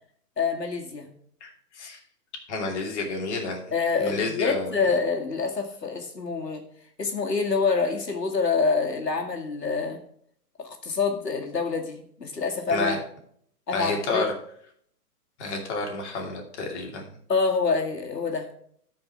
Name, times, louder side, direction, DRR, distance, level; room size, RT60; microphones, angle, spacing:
voice 1, 0.4-1.1 3.7-6.6 7.0-10.0 10.6-12.9 13.7-14.3 17.3-18.5, left 4 dB, 85° left, 2 dB, 2.2 m, -26 dB
voice 2, 2.5-3.6 4.0-4.8 12.7-13.0 13.7-14.3 15.4-17.0, left 3 dB, 45° left, 1 dB, 2.9 m, -29 dB
13.0 x 5.2 x 4.8 m, 0.64 s
figure-of-eight pair, 130°, 48 cm